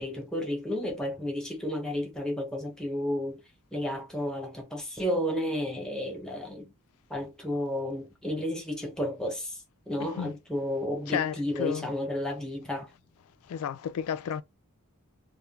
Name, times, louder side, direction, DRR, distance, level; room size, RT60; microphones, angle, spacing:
voice 1, 0.0-3.4 3.7-6.7 7.1-9.6 9.9-12.9, left 1 dB, 5° left, 0.7 m, -32 dB
voice 2, 10.0-10.3 11.1-11.9 13.5-14.4, left 8 dB, 65° left, 0.3 m, -32 dB
2.3 x 2.1 x 3.1 m
head